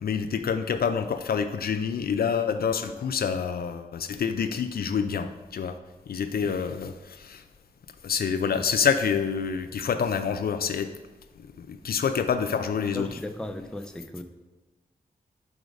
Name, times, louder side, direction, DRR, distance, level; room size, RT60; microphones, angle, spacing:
voice 1, 0.0-5.8 6.1-7.4 8.0-10.9 11.6-13.2, left 6 dB, 70° left, 9 dB, 0.4 m, -27 dB
voice 2, 12.9-14.2, left 1 dB, 5° left, 6 dB, 0.6 m, -36 dB
4.8 x 4.8 x 5.2 m, 1.2 s
cardioid pair, 50°, 16 cm